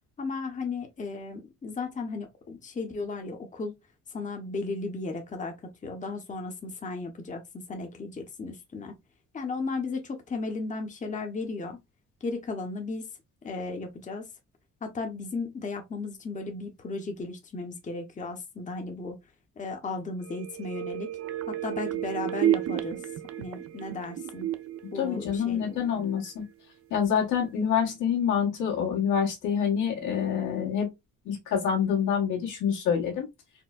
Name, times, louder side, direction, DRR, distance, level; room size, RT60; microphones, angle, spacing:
voice 1, 0.2-3.7 4.1-5.5 5.8-7.4 7.7-8.9 9.3-11.8 12.2-13.0 13.4-14.2 14.8-19.2 19.6-21.1 21.5-23.0 23.4-24.5 24.9-25.9, left 3 dB, 25° left, 0.7 m, -35 dB
sound 1, 20.2-25.9 26.3-26.4, right 12 dB, 50° right, 0.4 m, -32 dB
voice 2, 24.9-26.4 26.9-30.9 31.2-33.3, left 7 dB, 85° left, 1.4 m, -26 dB
4.3 x 2.1 x 2.3 m
cardioid pair, 90°, 30 cm